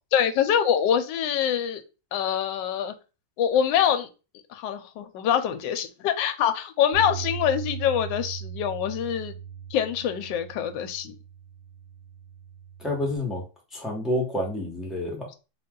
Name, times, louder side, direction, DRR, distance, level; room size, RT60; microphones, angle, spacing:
voice 1, 0.1-1.8 2.1-2.9 3.4-4.1 4.5-9.3 9.7-11.2, left 9 dB, 75° left, 8 dB, 1.2 m, -25 dB
Bass guitar, 6.9-13.2, right 8 dB, 45° right, 1.4 m, -38 dB
voice 2, 12.8-13.4 13.7-15.3, left 1 dB, ahead, -1 dB, 0.8 m, -28 dB
4.0 x 2.5 x 3.7 m, 0.30 s
omnidirectional pair, 2.1 m